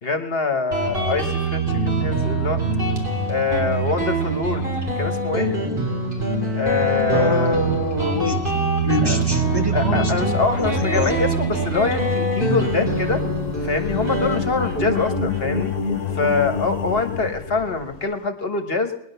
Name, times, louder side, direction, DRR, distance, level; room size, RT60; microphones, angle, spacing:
voice 1, 0.0-2.6 3.3-4.6 5.0-5.5 6.5-7.6 9.0-9.2 9.7-13.2 13.6-15.7 16.1-18.9, left 4 dB, 50° left, 7 dB, 1.4 m, -24 dB
Guitar, 0.7-17.9, right 2 dB, 40° right, 3.7 m, -24 dB
sound 1, 2.6-3.3 3.7-3.8 7.3-18.1, left 9 dB, 85° left, 1.1 m, -32 dB
voice 2, 7.1-8.6 8.8-11.1, left 2 dB, 20° right, 0 dB, 1.4 m, -25 dB
20.5 x 10.5 x 6.8 m, 0.81 s
omnidirectional pair, 1.3 m